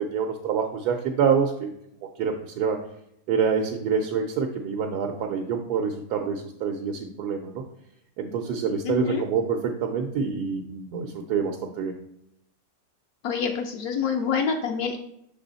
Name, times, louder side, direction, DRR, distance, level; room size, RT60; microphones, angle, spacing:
voice 1, 0.0-1.7 2.2-2.8 3.3-7.6 8.2-11.9, right 6 dB, 90° right, 2 dB, 1.2 m, -26 dB
voice 2, 8.8-9.2 13.2-15.0, left 6 dB, 75° left, 3 dB, 1.0 m, -26 dB
6.1 x 4.1 x 4.0 m, 0.75 s
omnidirectional pair, 1.7 m